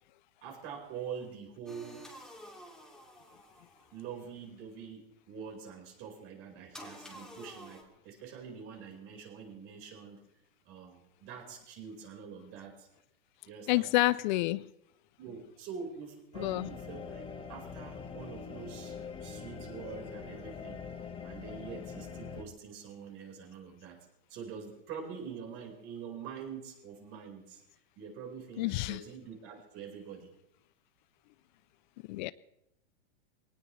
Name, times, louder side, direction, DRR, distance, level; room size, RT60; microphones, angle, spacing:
voice 1, 0.4-2.1 3.9-10.2 10.6-12.9 13.4-13.9 15.2-17.2 17.5-20.8 21.2-27.6 28.0-30.3, right 6 dB, 45° right, 4.9 m, -45 dB
sound 1, 1.7-4.1 6.7-7.8, left 1 dB, ahead, 2.6 m, -50 dB
voice 2, 13.7-14.7 16.4-16.7 28.6-29.0 32.1-32.3, left 19 dB, 50° left, 0.5 m, -28 dB
sound 2, 16.3-22.4, left 6 dB, 15° left, 1.5 m, -43 dB
22.0 x 18.5 x 3.3 m
hypercardioid pair, 125°, 31 cm